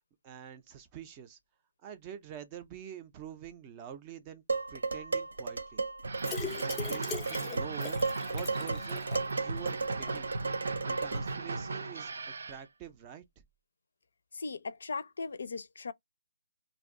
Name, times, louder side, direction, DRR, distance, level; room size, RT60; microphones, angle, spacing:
voice 1, 0.2-1.4 1.8-4.4 4.7-5.8 6.6-9.1 9.3-10.3 10.8-13.2, right 9 dB, 20° right, 0.4 m, -46 dB
Dishes pots and pans, 4.5-11.4, right 3 dB, 85° right, 0.9 m, -35 dB
sound 1, 6.0-12.6, right 3 dB, 70° right, 0.6 m, -37 dB
sound 2, 6.2-9.3 9.7-9.8 10.1-10.2, left 4 dB, 10° left, 0.7 m, -40 dB
voice 2, 14.3-15.9, left 4 dB, 75° left, 0.5 m, -38 dB
2.5 x 2.3 x 3.6 m
hypercardioid pair, 165°, 0 cm